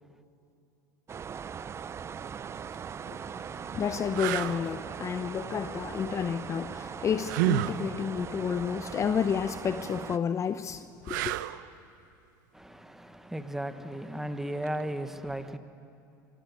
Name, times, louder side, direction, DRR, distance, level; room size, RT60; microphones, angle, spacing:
sound 1, 1.1-10.2, right 7 dB, 25° right, 0.6 m, -40 dB
sound 2, 2.5-2.7 3.4-3.5 4.1-4.6 7.2-7.8 11.0-11.7 14.6-14.8, right 16 dB, 75° right, 0.8 m, -29 dB
voice 1, 3.1-11.3, left 7 dB, 30° left, 0.7 m, -31 dB
voice 2, 12.5-15.6, right 1 dB, 5° right, 1.3 m, -35 dB
25.0 x 16.5 x 9.7 m
supercardioid pair, 100°, 10 cm